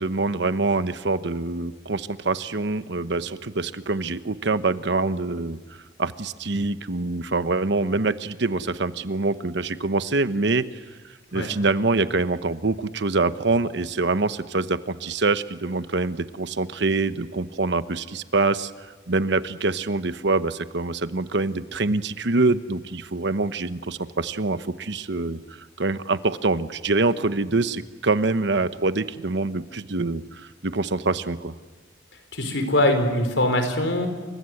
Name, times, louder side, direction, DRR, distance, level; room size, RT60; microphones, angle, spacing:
voice 1, 0.0-5.6 6.0-10.6 11.3-18.7 19.1-25.4 25.8-31.5, right 3 dB, 65° right, 12 dB, 1.1 m, -25 dB
voice 2, 32.3-34.1, left 1 dB, 80° left, 7 dB, 4.6 m, -22 dB
29.0 x 25.0 x 7.9 m, 1.4 s
head